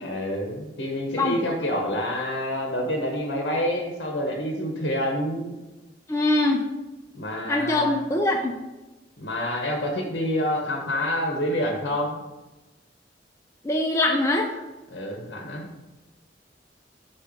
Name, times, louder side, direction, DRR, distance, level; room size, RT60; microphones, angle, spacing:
voice 1, 0.0-5.5 7.1-8.0 9.2-12.2 14.9-15.7, left 1 dB, 65° left, 0 dB, 0.9 m, -27 dB
voice 2, 6.1-6.6 7.5-8.6 13.6-14.6, left 2 dB, 15° left, 1 dB, 0.4 m, -23 dB
5.5 x 4.3 x 4.9 m, 1.1 s
head